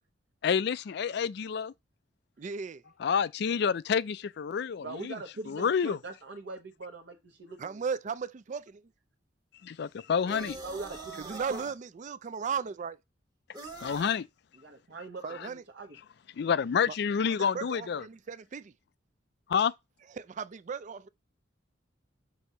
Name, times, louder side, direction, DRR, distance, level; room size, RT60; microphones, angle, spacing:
voice 1, 0.4-1.7 3.0-5.2 5.5-6.0 9.6-10.6 13.8-14.3 15.4-15.5 16.4-18.0 19.5-19.7, left 7 dB, 60° left, 0.4 m, -28 dB
voice 2, 2.4-2.8 7.6-8.8 11.2-13.0 15.2-15.6 16.9-17.0 17.5-18.7 20.2-21.1, right 6 dB, 40° right, 0.4 m, -36 dB
voice 3, 4.8-7.8 10.2-11.6 14.6-16.0, right 3 dB, 65° right, 0.9 m, -42 dB
sound 1, 10.3-11.8 13.5-14.2, right 3 dB, 20° right, 1.1 m, -43 dB
6.2 x 2.9 x 5.4 m
head